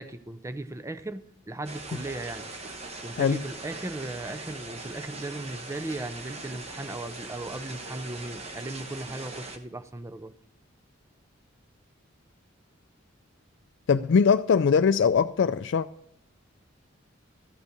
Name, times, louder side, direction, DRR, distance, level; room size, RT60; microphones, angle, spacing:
voice 1, 0.0-2.5 3.0-10.3, right 2 dB, 15° right, 0.4 m, -37 dB
sound 1, 1.6-9.6, right 2 dB, 30° right, 1.1 m, -41 dB
voice 2, 13.9-15.9, left 6 dB, 60° left, 0.4 m, -21 dB
14.0 x 5.4 x 6.6 m
head